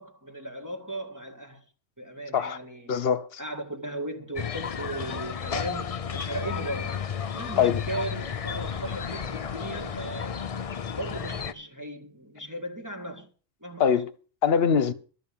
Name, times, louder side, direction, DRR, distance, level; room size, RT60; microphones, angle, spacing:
voice 1, 0.0-1.6 2.0-3.0 3.4-7.1 7.3-10.5 10.9-13.3 13.6-13.9, right 1 dB, 15° right, 1.7 m, -37 dB
voice 2, 2.9-3.4 7.6-7.8 13.8-14.1 14.4-14.9, left 7 dB, 60° left, 1.2 m, -23 dB
sound 1, 4.4-11.5, left 7 dB, 40° left, 0.5 m, -33 dB
13.0 x 5.6 x 8.8 m
omnidirectional pair, 1.2 m